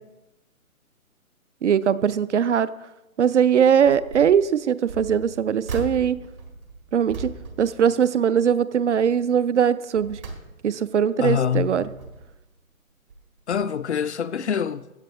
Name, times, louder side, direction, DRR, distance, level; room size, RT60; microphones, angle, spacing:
voice 1, 1.6-2.7 3.2-6.2 6.9-7.3 7.6-10.2 10.6-11.8, right 8 dB, 55° right, 0.5 m, -20 dB
sound 1, 3.8-4.4 4.8-8.5 8.9-9.2 9.7-11.0 11.5-12.4 13.1-13.3 13.5-13.6, right 2 dB, 75° right, 2.0 m, -38 dB
voice 2, 11.2-11.9 13.5-15.0, left 8 dB, 55° left, 0.5 m, -25 dB
15.5 x 8.5 x 3.0 m
figure-of-eight pair, 135°, 43 cm